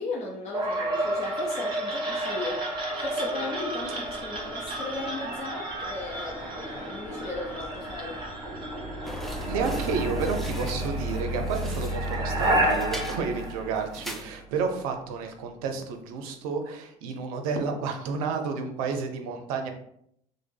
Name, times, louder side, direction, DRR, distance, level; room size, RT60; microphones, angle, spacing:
voice 1, 0.0-2.6 3.0-8.2, left 3 dB, 40° left, -2 dB, 0.7 m, -36 dB
sound 1, 0.5-14.4, right 1 dB, 30° right, 1.4 m, -31 dB
sound 2, 9.0-14.2, equal, ahead, 0.5 m, -43 dB
voice 2, 9.2-19.7, right 5 dB, 85° right, 5 dB, 0.5 m, -31 dB
3.1 x 2.1 x 3.3 m, 0.72 s
hypercardioid pair, 65°, 18 cm